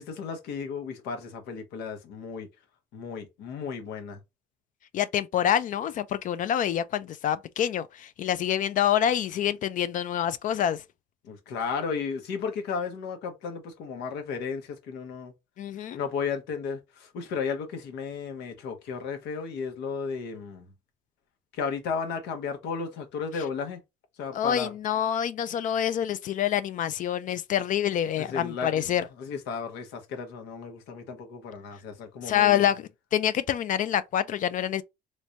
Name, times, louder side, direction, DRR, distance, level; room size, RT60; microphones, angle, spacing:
voice 1, 0.0-2.5 2.9-4.2 11.2-15.3 15.9-20.7 21.5-23.8 24.2-24.7 28.2-28.8 29.2-32.6, left 5 dB, 85° left, 1.0 m, -34 dB
voice 2, 4.9-10.8 15.6-16.0 24.3-29.1 32.2-34.8, left 10 dB, 50° left, 0.4 m, -26 dB
3.3 x 3.1 x 2.6 m
cardioid pair, 110°, 17 cm